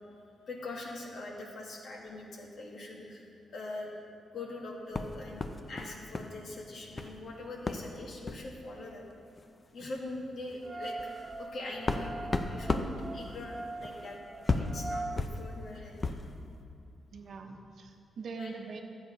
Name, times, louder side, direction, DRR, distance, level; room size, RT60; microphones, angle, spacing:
voice 1, 0.5-3.9 4.3-9.0 9.7-14.2 14.6-16.2 18.4-18.5, left 2 dB, 55° left, -2 dB, 2.0 m, -43 dB
sound 1, 4.9-6.4 6.6-7.2 7.7-7.9 8.2-8.5 9.4-9.5 9.8-10.0 10.5-16.3, left 3 dB, 25° left, 0.6 m, -35 dB
sound 2, 10.6-15.1, right 2 dB, 15° right, 0.6 m, -42 dB
voice 2, 17.1-18.8, right 4 dB, 55° right, 4 dB, 1.0 m, -42 dB
12.5 x 8.2 x 5.3 m, 2.7 s
wide cardioid pair, 135°, 0 cm